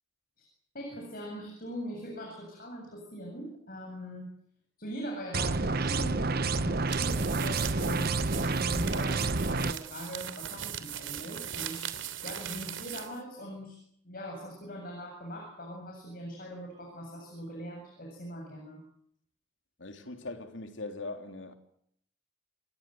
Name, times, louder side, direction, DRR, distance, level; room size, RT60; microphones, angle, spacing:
voice 1, 0.7-4.3 4.8-11.9 12.2-13.8 14.0-18.8, equal, 45° left, 7.8 m, -41 dB
sound 1, 5.3-9.7, right 3 dB, 50° right, 1.1 m, -29 dB
sound 2, 6.8-13.2, right 10 dB, 65° right, 3.1 m, -39 dB
voice 2, 19.8-21.5, left 2 dB, 65° left, 3.4 m, -40 dB
28.5 x 21.0 x 7.9 m
head